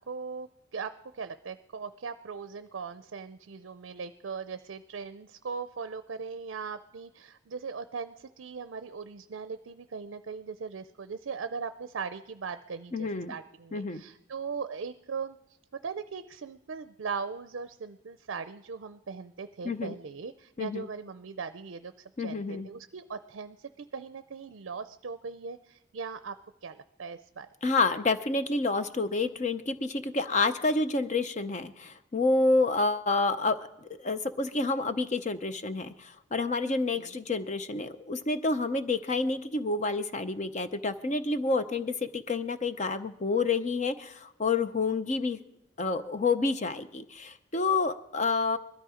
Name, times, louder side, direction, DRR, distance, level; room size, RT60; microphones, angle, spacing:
voice 1, 0.1-15.4 15.8-26.4 26.6-27.5 36.9-37.1, right 5 dB, 70° right, 11 dB, 0.5 m, -39 dB
voice 2, 12.9-13.3 13.7-14.0 19.6-19.9 20.6-20.9 22.2-22.7 27.6-45.4 45.8-48.6, left 3 dB, 35° left, 10 dB, 0.7 m, -29 dB
21.0 x 13.0 x 4.9 m, 0.87 s
head